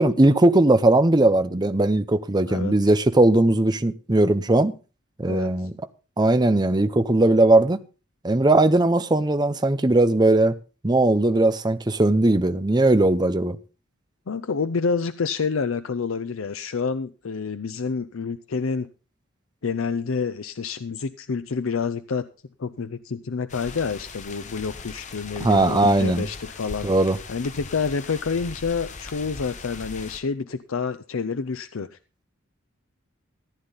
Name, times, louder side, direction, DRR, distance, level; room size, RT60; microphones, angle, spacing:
voice 1, 0.0-4.7 5.2-5.7 6.2-7.8 8.2-10.6 10.8-13.6 25.4-26.2 26.8-27.2, right 2 dB, 20° right, 0.7 m, -19 dB
voice 2, 5.3-5.7 14.3-18.9 19.6-22.3 22.6-26.9 27.3-32.0, left 5 dB, 80° left, 0.6 m, -28 dB
sound 1, 23.5-30.2, left 4 dB, 35° left, 1.1 m, -40 dB
14.5 x 9.8 x 4.0 m
head